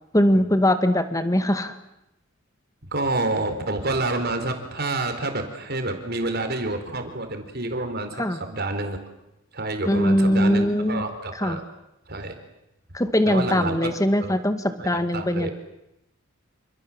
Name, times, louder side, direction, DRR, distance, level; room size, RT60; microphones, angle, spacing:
voice 1, 0.1-1.8 8.2-8.4 9.9-11.0 11.4-11.6 12.9-15.5, left 1 dB, 15° left, 10 dB, 2.0 m, -21 dB
voice 2, 2.9-9.0 9.5-11.6 12.1-12.4 13.3-13.9 14.2-14.3 14.8-15.5, right 2 dB, 50° right, 6 dB, 4.4 m, -28 dB
28.0 x 27.5 x 7.6 m, 0.89 s
head